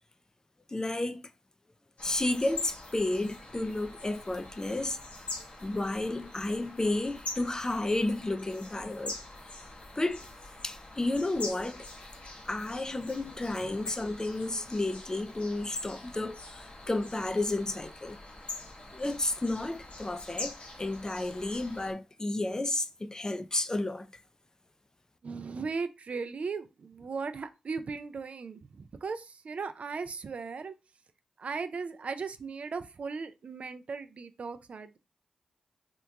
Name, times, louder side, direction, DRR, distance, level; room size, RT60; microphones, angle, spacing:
voice 1, 0.7-1.3 2.0-5.0 5.6-9.2 10.0-10.2 10.6-11.9 12.5-18.2 18.9-24.1, left 2 dB, 30° left, 0.4 m, -32 dB
sound 1, 2.0-21.9, left 2 dB, 60° left, 0.9 m, -44 dB
voice 2, 25.2-30.8 31.4-35.0, right 4 dB, 60° right, 0.3 m, -37 dB
2.9 x 2.2 x 3.4 m
supercardioid pair, 40°, 2 cm